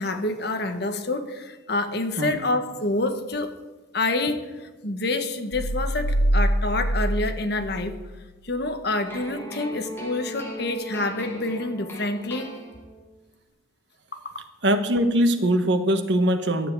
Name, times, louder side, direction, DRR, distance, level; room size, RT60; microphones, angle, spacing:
voice 1, 0.0-3.5 3.9-8.0 8.4-12.5, left 2 dB, 55° left, 7 dB, 1.3 m, -27 dB
sound 1, 5.5-8.5, equal, 80° left, 4.1 m, -25 dB
sound 2, 9.1-13.2, equal, 10° left, 2.1 m, -38 dB
voice 2, 14.6-16.7, right 1 dB, 60° right, 7 dB, 1.2 m, -22 dB
12.0 x 7.6 x 8.2 m, 1.2 s
head